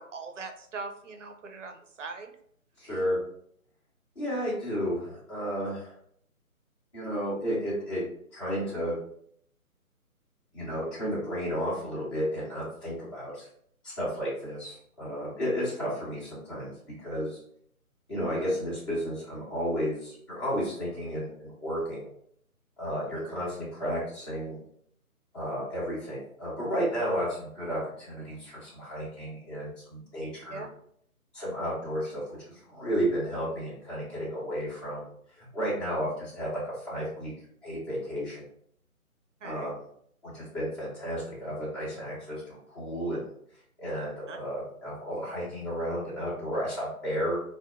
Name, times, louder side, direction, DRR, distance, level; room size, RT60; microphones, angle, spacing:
voice 1, 0.0-2.3 2.8-2.9 18.4-18.5 30.5-30.7 39.4-39.8 44.3-44.4, right 4 dB, 55° right, 5 dB, 0.5 m, -41 dB
voice 2, 2.8-3.2 4.1-5.9 6.9-8.0 8.3-8.9 10.5-13.5 13.8-16.7 17.0-17.4 18.1-22.1 22.8-24.6 25.3-30.6 31.3-35.0 35.4-37.3 37.6-38.4 39.4-39.8 40.2-43.3 43.8-47.4, equal, 20° left, -9 dB, 1.1 m, -32 dB
2.8 x 2.1 x 2.3 m, 0.66 s
figure-of-eight pair, 145°, 44 cm